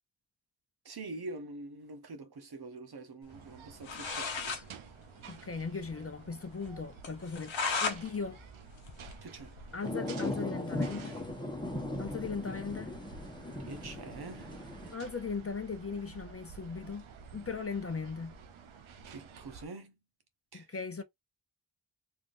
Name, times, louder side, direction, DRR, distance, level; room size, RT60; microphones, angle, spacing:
voice 1, 0.8-4.6 9.2-9.5 13.7-14.6 19.1-20.0 20.5-20.8, right 3 dB, 55° right, 0.9 m, -45 dB
sound 1, 3.3-19.7, right 6 dB, 85° right, 0.7 m, -51 dB
sound 2, 3.6-3.7 3.8-4.6 5.0-5.1 5.3-5.4 5.8-5.9 6.3-6.4 7.0-8.0 8.4-9.7, left 4 dB, 70° left, 0.9 m, -35 dB
voice 2, 5.3-8.4 9.7-11.2 12.0-12.9 14.9-17.1 17.3-18.3 20.5-21.0, left 5 dB, 30° left, 0.6 m, -38 dB
sound 3, 9.8-14.9, left 1 dB, 10° left, 1.0 m, -38 dB
3.5 x 2.5 x 2.5 m
cardioid pair, 50°, 47 cm